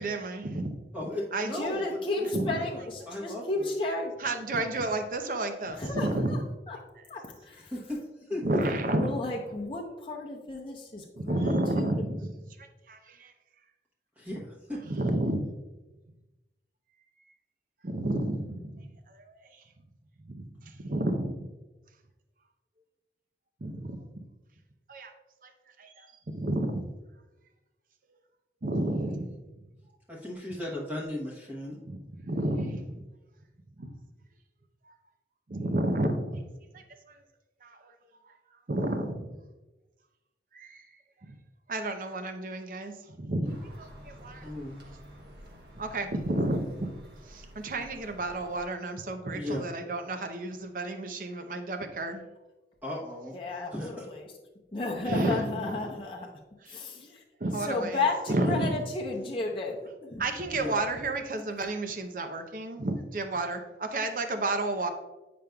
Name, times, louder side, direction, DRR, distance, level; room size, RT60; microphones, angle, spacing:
voice 1, 0.0-0.8 1.3-1.5 2.3-2.5 4.2-6.4 8.4-9.2 11.2-13.3 14.8-15.5 17.8-19.4 20.3-21.5 23.6-24.2 24.9-25.1 25.4-25.5 25.8-26.9 28.6-29.4 31.9-33.0 33.8-33.9 34.9-35.0 35.5-36.4 36.7-37.2 37.6-37.9 38.2-38.3 38.7-39.4 40.5-40.9 41.2-41.3 41.7-44.5 45.8-46.9 47.3-52.2 55.1-55.9 56.6-56.9 57.4-58.8 60.2-64.9, right 1 dB, 50° right, 6 dB, 0.6 m, -31 dB
voice 2, 0.9-3.7 7.7-8.0 8.3-8.4 14.2-14.8 30.1-31.8 44.4-44.8 49.3-49.7 52.8-53.3 53.7-54.1 59.1-59.3 60.5-60.7, left 1 dB, 10° right, -5 dB, 1.0 m, -36 dB
voice 3, 1.5-4.1 5.7-6.4 6.7-6.8 7.1-7.7 8.9-12.0 53.3-54.3 54.7-56.3 56.7-57.2 57.7-60.2, left 2 dB, 30° left, -2 dB, 0.7 m, -33 dB
sound 1, 43.4-48.6, equal, 65° right, 1.3 m, -50 dB
9.1 x 5.1 x 2.3 m, 1.1 s
head